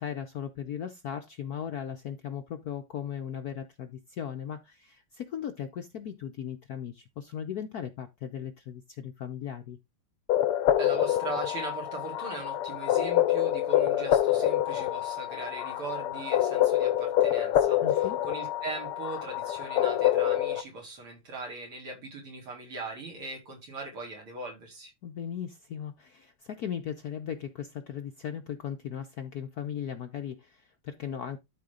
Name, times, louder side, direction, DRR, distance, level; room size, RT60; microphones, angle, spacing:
voice 1, 0.0-9.8 17.8-18.2 25.0-31.4, left 9 dB, 70° left, 0.9 m, -37 dB
sound 1, 10.3-20.6, left 12 dB, 90° left, 1.7 m, -26 dB
voice 2, 10.8-18.0 18.3-24.9, right 3 dB, 75° right, 4.5 m, -40 dB
12.5 x 4.2 x 3.8 m
omnidirectional pair, 2.4 m